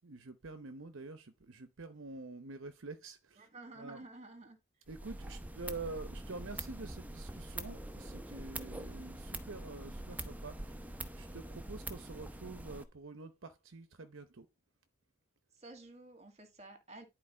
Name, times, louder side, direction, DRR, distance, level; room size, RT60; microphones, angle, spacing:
voice 1, 0.0-3.5 3.8-4.0 4.9-14.5, right 3 dB, 60° right, 0.8 m, -47 dB
voice 2, 3.4-4.6 15.5-17.1, right 2 dB, 30° right, 2.0 m, -52 dB
sound 1, 4.9-12.8, right 1 dB, 10° right, 0.8 m, -44 dB
11.0 x 4.4 x 4.4 m
head